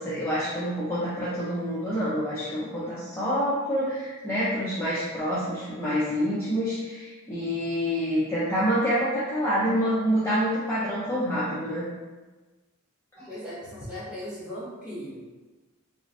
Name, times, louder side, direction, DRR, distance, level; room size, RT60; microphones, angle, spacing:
voice 1, 0.0-11.8 13.2-13.3, equal, 10° left, -11 dB, 0.5 m, -27 dB
voice 2, 13.3-15.2, equal, 5° right, -11 dB, 1.0 m, -38 dB
3.7 x 2.0 x 2.5 m, 1.2 s
head